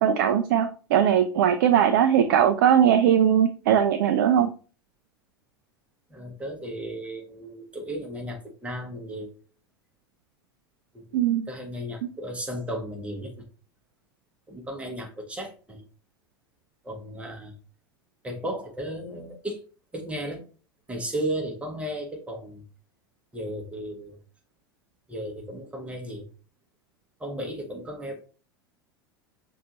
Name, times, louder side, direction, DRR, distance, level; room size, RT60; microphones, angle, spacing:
voice 1, 0.0-4.5 11.1-11.5, right 9 dB, 50° right, 7 dB, 0.4 m, -20 dB
voice 2, 6.1-9.3 10.9-11.2 11.5-13.4 14.5-15.8 16.8-17.5 18.2-19.6 19.9-20.5 20.9-22.6 23.3-24.2 25.1-26.2 27.2-28.2, right 1 dB, 10° right, 1 dB, 1.2 m, -35 dB
5.9 x 2.6 x 3.0 m, 0.37 s
figure-of-eight pair, 80°, 12 cm